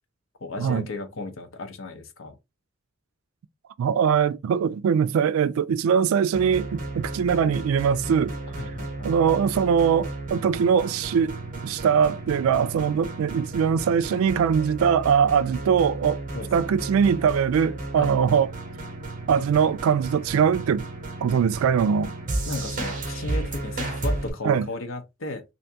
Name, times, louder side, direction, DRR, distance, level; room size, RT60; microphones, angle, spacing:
voice 1, 0.4-2.3 8.6-9.1 15.5-15.6 16.3-16.5 18.0-18.1 22.5-25.4, left 3 dB, 70° left, 0.7 m, -35 dB
voice 2, 3.8-8.4 9.0-16.2 16.5-18.5 19.3-20.9 21.2-22.1 24.4-24.7, right 7 dB, 85° right, 0.3 m, -22 dB
sound 1, 6.3-24.3, right 2 dB, 40° right, 1.0 m, -33 dB
3.4 x 2.6 x 2.7 m
head